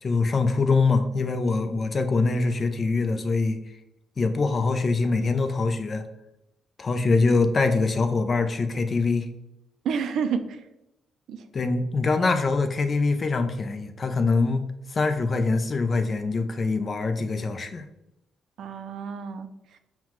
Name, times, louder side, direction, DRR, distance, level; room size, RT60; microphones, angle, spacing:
voice 1, 0.0-3.6 4.2-6.0 6.8-9.3 11.5-17.8, left 3 dB, 40° left, 8 dB, 0.4 m, -24 dB
voice 2, 9.8-10.6 11.3-11.5 18.6-19.8, right 6 dB, 75° right, 9 dB, 0.4 m, -30 dB
5.6 x 2.2 x 3.0 m, 0.89 s
cardioid pair, 90°, 0 cm